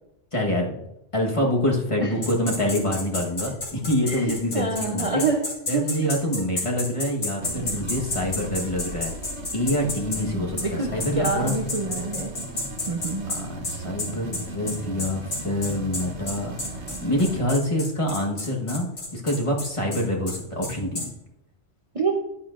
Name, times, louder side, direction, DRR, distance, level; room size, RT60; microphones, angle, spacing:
voice 1, 0.3-0.8 1.1-5.2 5.7-9.1 9.5-11.5 13.3-21.0, left 1 dB, 25° left, -2 dB, 1.4 m, -26 dB
sound 1, 2.2-10.2 10.6-10.7 11.0-21.1, left 2 dB, 75° left, 2.7 m, -31 dB
voice 2, 4.1-5.9 10.3-12.4 12.9-13.3 21.9-22.2, right 4 dB, 35° right, 2 dB, 0.7 m, -27 dB
sound 2, 7.4-17.4, right 2 dB, 70° right, 1.4 m, -37 dB
10.5 x 9.8 x 2.5 m, 0.86 s
omnidirectional pair, 1.2 m